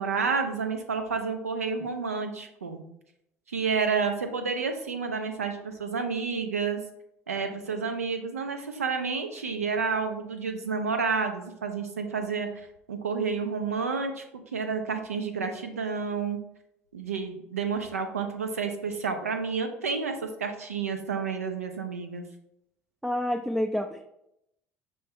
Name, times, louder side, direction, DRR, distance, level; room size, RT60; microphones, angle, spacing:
voice 1, 0.0-2.8 3.5-6.8 7.3-14.2 14.5-16.4 16.9-22.2, right 5 dB, 90° right, 6 dB, 0.5 m, -30 dB
voice 2, 23.0-24.1, left 1 dB, ahead, 4 dB, 0.3 m, -28 dB
5.3 x 2.2 x 3.4 m, 0.80 s
hypercardioid pair, 60°, 8 cm